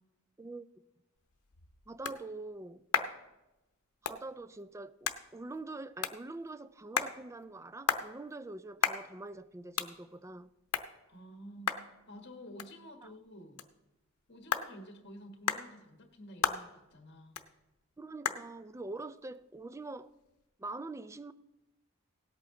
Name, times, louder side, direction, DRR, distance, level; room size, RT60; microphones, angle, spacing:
sound 1, 1.2-20.5, left 7 dB, 90° left, 0.8 m, -39 dB
voice 1, 1.9-2.8 4.0-10.5 13.0-13.1 18.0-20.1 20.6-21.3, right 2 dB, 15° right, 0.3 m, -44 dB
voice 2, 11.1-11.7 12.1-13.6 14.3-17.4, equal, 50° left, 1.4 m, -50 dB
17.5 x 8.4 x 3.8 m
head